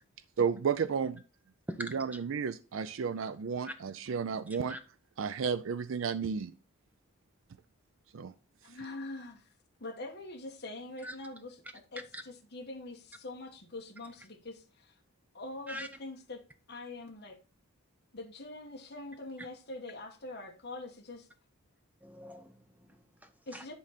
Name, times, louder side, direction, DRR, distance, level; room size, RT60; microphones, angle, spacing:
voice 1, 0.4-1.2 1.9-4.8 5.2-6.5 8.1-8.3, right 6 dB, 65° right, 0.4 m, -32 dB
voice 2, 8.6-9.5 9.8-15.0 15.3-16.4 16.7-17.4 18.1-21.3 23.5-23.7, left 2 dB, 50° left, 1.4 m, -44 dB
voice 3, 22.0-23.6, equal, 5° right, 0.7 m, -45 dB
10.5 x 3.9 x 4.1 m
head